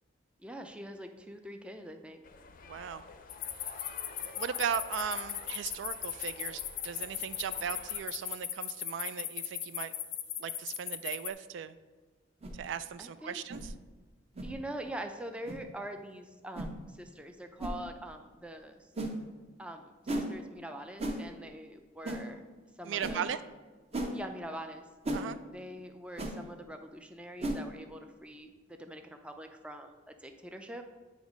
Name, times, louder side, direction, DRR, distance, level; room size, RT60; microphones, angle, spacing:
voice 1, 0.4-2.2 13.0-13.4 14.4-18.9 19.6-22.4 22.8-23.3 24.1-24.8 25.5-30.8, right 1 dB, 5° right, 5 dB, 0.4 m, -44 dB
sound 1, 2.2-8.0, left 3 dB, 45° left, 0.5 m, -50 dB
voice 2, 2.7-3.1 4.4-9.9 10.4-11.7 12.5-13.7 22.8-23.4 25.1-25.4, right 7 dB, 75° right, 13 dB, 0.3 m, -37 dB
sound 2, 3.3-11.3, left 11 dB, 90° left, 0.6 m, -37 dB
sound 3, 12.4-12.6 13.5-13.7 14.4-14.5 15.4-15.6 16.5-16.7 17.6-17.8 19.0-19.2 20.1-20.3 21.0-21.2 22.0-22.2 23.0-23.2 23.9-24.1 25.0-25.2 26.2-26.3 27.4-27.6, right 1 dB, 35° right, 0.7 m, -34 dB
8.9 x 3.1 x 5.0 m, 1.3 s
head